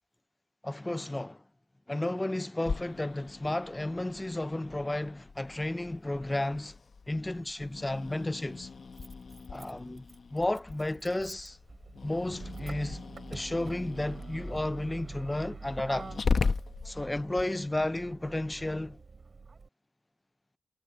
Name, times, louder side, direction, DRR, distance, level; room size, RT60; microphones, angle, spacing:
voice 1, 0.6-1.4 1.9-6.8 7.1-8.7 9.5-10.0 10.3-11.6 12.0-13.0 13.3-16.1 16.8-19.0, left 1 dB, 15° left, 0.4 m, -33 dB
Growling, 2.6-17.4, left 4 dB, 60° left, 1.2 m, -38 dB
Motor vehicle (road), 7.3-7.4 8.6-19.7, right 4 dB, 50° right, 4.5 m, -46 dB
wide cardioid pair, 95°, 0 cm